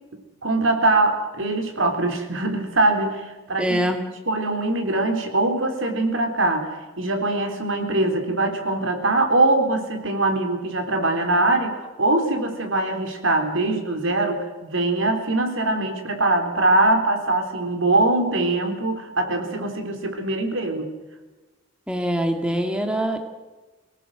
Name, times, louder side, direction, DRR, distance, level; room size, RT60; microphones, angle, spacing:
voice 1, 0.1-3.8 4.3-6.7 7.0-20.9, right 2 dB, 85° right, 5 dB, 3.6 m, -22 dB
voice 2, 3.6-4.0 21.9-23.2, right 1 dB, 5° right, 5 dB, 1.9 m, -23 dB
24.0 x 18.0 x 7.9 m, 1.2 s
head